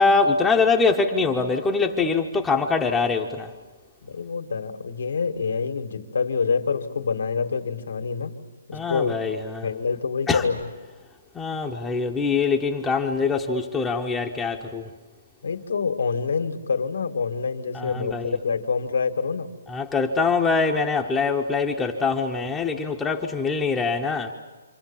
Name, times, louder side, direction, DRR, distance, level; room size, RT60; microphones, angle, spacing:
voice 1, 0.0-3.5 8.7-9.7 10.3-10.4 11.3-14.9 17.7-18.3 19.7-24.3, left 4 dB, 10° left, 0.9 m, -23 dB
voice 2, 4.0-8.3 8.7-9.1 9.6-10.7 15.4-19.5, left 5 dB, 80° left, 2.1 m, -26 dB
28.0 x 26.0 x 7.3 m
hypercardioid pair, 160°, 0 cm